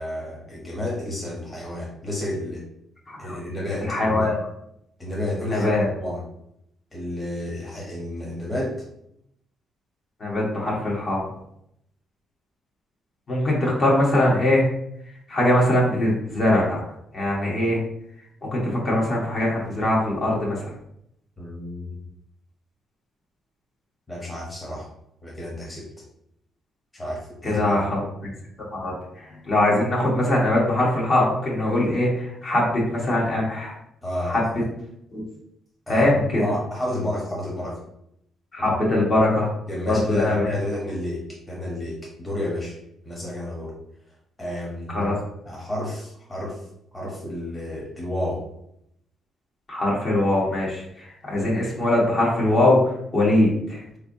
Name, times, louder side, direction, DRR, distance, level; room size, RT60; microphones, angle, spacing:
voice 1, 0.0-2.6 3.2-4.3 5.0-6.2 6.9-8.8 21.4-22.0 24.1-24.9 25.2-25.9 26.9-27.8 34.0-34.6 35.9-37.8 38.6-38.7 39.7-42.8 43.0-43.7 44.4-45.1 45.4-46.6 46.9-48.4, left 1 dB, 20° left, -4 dB, 1.1 m, -31 dB
voice 2, 3.8-4.3 5.5-5.9 10.2-11.2 13.3-14.7 15.3-16.8 17.1-17.8 18.4-20.7 27.4-28.3 28.7-33.7 34.3-34.4 35.1-35.2 35.9-36.4 38.5-39.5 39.8-40.5 44.9-45.2 49.7-53.8, left 1 dB, 45° left, -4 dB, 1.3 m, -22 dB
3.7 x 3.2 x 2.7 m, 0.77 s
cardioid pair, 90°, 0 cm